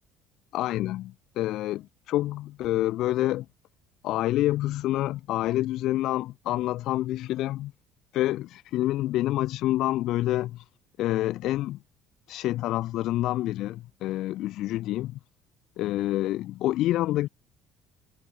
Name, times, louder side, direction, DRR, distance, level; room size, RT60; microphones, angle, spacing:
voice 1, 0.5-3.5 4.0-7.7 8.1-10.6 11.0-11.8 12.3-15.2 15.8-17.3, left 15 dB, 55° left, 0.7 m, -27 dB
cardioid pair, 170°, 0 cm